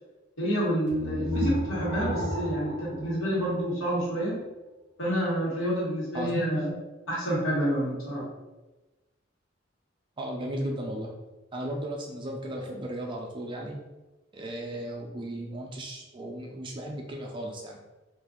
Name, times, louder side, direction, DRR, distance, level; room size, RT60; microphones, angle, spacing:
voice 1, 0.4-4.4 5.0-6.7 7.1-8.2, equal, 85° left, -7 dB, 1.3 m, -28 dB
sound 1, 0.9-4.0, left 1 dB, 55° left, 1.1 m, -33 dB
voice 2, 10.2-11.1 11.5-13.8 14.3-17.8, right 1 dB, 25° right, 0 dB, 0.4 m, -35 dB
2.5 x 2.4 x 3.6 m, 1.1 s
head